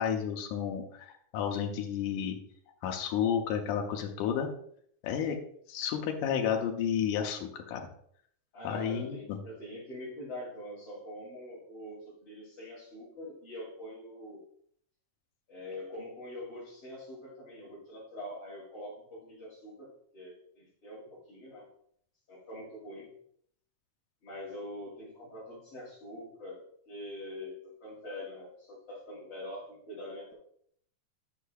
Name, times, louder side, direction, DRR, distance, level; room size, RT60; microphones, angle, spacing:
voice 1, 0.0-2.4 2.8-4.5 5.0-5.4 5.7-7.8 8.6-9.4, left 8 dB, 90° left, 3 dB, 2.2 m, -31 dB
voice 2, 8.5-14.4 15.5-21.7 22.3-23.1 24.2-30.3, left 1 dB, 50° left, -6 dB, 3.5 m, -44 dB
10.0 x 5.5 x 2.3 m, 0.65 s
omnidirectional pair, 3.4 m